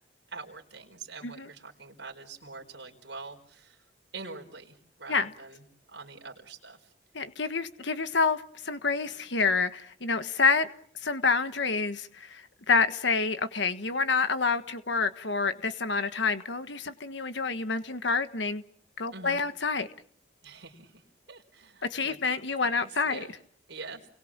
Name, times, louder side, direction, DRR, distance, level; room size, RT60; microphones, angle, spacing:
voice 1, 0.3-3.8 4.1-5.6 5.9-6.9 19.1-19.4 20.4-23.3 23.7-24.1, right 4 dB, 70° right, 1 dB, 4.6 m, -45 dB
voice 2, 7.1-10.7 11.0-18.6 19.0-19.9 21.9-23.3, left 4 dB, 70° left, 10 dB, 1.4 m, -28 dB
30.0 x 22.5 x 7.5 m, 0.62 s
head